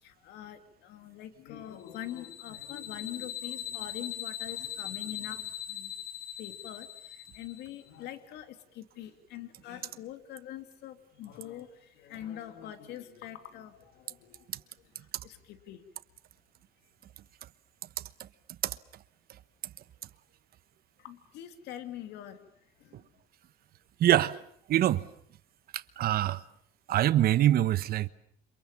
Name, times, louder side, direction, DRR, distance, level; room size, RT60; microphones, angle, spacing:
voice 1, 0.0-5.9 6.4-14.5 14.8-15.8 21.0-22.5 22.8-23.0, left 11 dB, 85° left, 3.0 m, -44 dB
sound 1, 1.9-7.8, left 11 dB, 60° left, 1.7 m, -40 dB
voice 2, 24.0-24.3 24.7-25.0 25.7-26.4 26.9-28.1, right 12 dB, 65° right, 1.1 m, -24 dB
29.5 x 27.0 x 7.2 m
cardioid pair, 110°, 17 cm